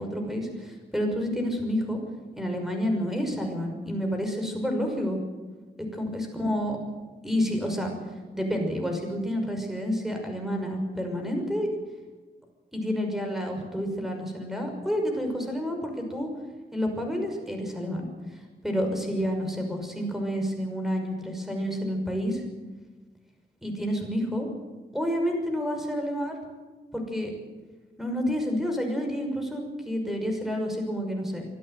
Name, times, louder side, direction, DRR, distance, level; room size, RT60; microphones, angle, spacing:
voice 1, 0.0-2.0 2.4-5.2 5.9-6.8 7.2-7.9 8.3-11.7 12.7-16.3 16.7-18.1 18.6-22.4 23.6-24.5 24.9-26.4 26.9-27.3 28.0-31.5, equal, ahead, 3 dB, 6.0 m, -29 dB
25.0 x 13.0 x 9.3 m, 1.3 s
wide cardioid pair, 120°, 17 cm